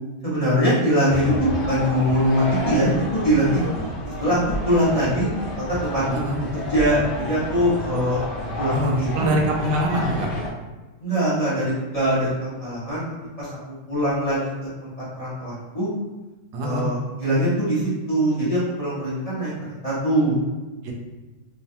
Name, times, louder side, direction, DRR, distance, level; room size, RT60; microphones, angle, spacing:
voice 1, 0.2-3.7 4.2-4.4 4.6-5.3 5.8-8.2 8.6-9.3 11.0-13.0 13.4-13.5 13.9-14.7 15.1-15.9 16.6-20.4, equal, 35° left, -10 dB, 0.6 m, -22 dB
sound 1, 1.1-10.5, equal, 80° left, 0.7 m, -30 dB
voice 2, 8.7-10.3 16.5-16.8 20.8-20.9, right 1 dB, 75° right, 0 dB, 1.1 m, -24 dB
3.0 x 2.1 x 2.7 m, 1.2 s
omnidirectional pair, 1.9 m